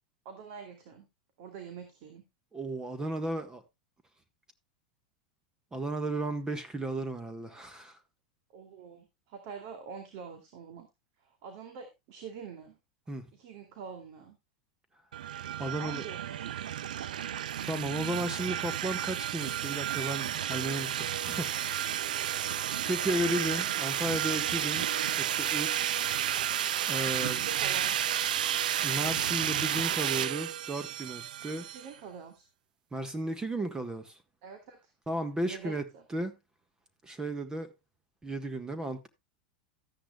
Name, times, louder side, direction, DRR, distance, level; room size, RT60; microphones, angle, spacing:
voice 1, 0.2-1.1 1.4-2.2 8.5-10.9 11.2-12.8 13.3-14.4 15.6-16.8 23.6-23.9 27.2-28.0 31.7-32.5 34.4-34.9 35.4-36.0, right 6 dB, 60° right, 2.6 m, -45 dB
voice 2, 2.5-3.6 5.7-8.0 13.1-13.3 15.6-16.0 17.6-22.1 22.8-24.8 25.2-25.9 26.9-27.5 28.8-31.7 32.9-34.2 35.1-35.8 36.1-36.3 37.0-37.7 38.2-39.1, right 1 dB, 15° right, 1.5 m, -34 dB
sound 1, 15.1-31.9, right 10 dB, 85° right, 0.5 m, -32 dB
13.5 x 10.0 x 2.3 m
hypercardioid pair, 105°, 4 cm